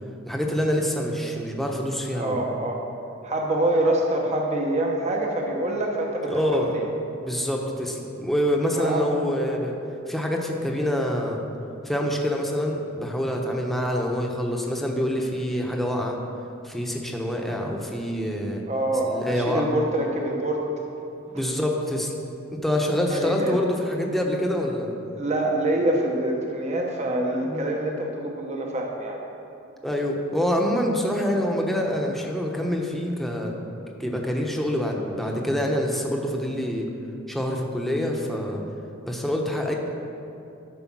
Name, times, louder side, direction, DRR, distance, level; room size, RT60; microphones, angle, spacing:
voice 1, 0.3-2.4 6.3-6.7 7.2-9.8 10.1-11.4 11.8-16.2 16.6-18.6 19.1-19.8 21.3-22.2 22.6-24.9 27.5-27.7 29.8-33.5 34.0-36.9 37.3-38.6 39.0-39.7, equal, ahead, 0 dB, 1.0 m, -26 dB
voice 2, 2.1-2.8 3.2-6.9 8.8-9.1 18.7-20.7 23.1-23.6 25.2-29.2, right 1 dB, 35° right, 0 dB, 0.9 m, -25 dB
13.0 x 4.9 x 6.1 m, 2.7 s
head